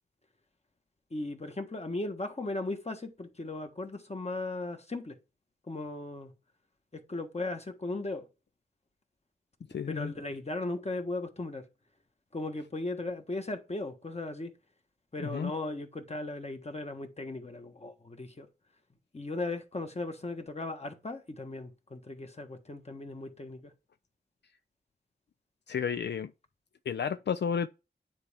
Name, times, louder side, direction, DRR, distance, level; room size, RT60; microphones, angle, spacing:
voice 1, 1.1-5.2 5.7-6.3 6.9-8.3 9.9-11.6 12.3-14.5 15.1-18.5 19.1-23.7, left 2 dB, 35° left, 1.4 m, -37 dB
voice 2, 9.7-10.1 15.2-15.5 25.7-26.3 26.9-27.7, left 7 dB, 75° left, 0.4 m, -32 dB
9.5 x 4.2 x 3.5 m
wide cardioid pair, 70°, 18 cm